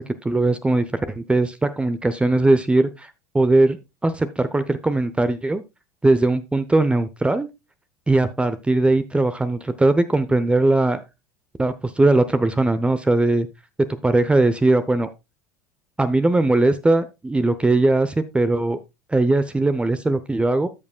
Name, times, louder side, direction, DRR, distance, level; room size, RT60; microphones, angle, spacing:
voice 1, 0.0-3.8 4.0-5.6 6.0-7.5 8.1-11.0 11.6-13.5 14.0-15.1 16.0-18.8 19.1-20.7, right 2 dB, 10° right, 12 dB, 0.7 m, -20 dB
13.0 x 7.2 x 2.3 m, 0.24 s
hypercardioid pair, 75°, 9 cm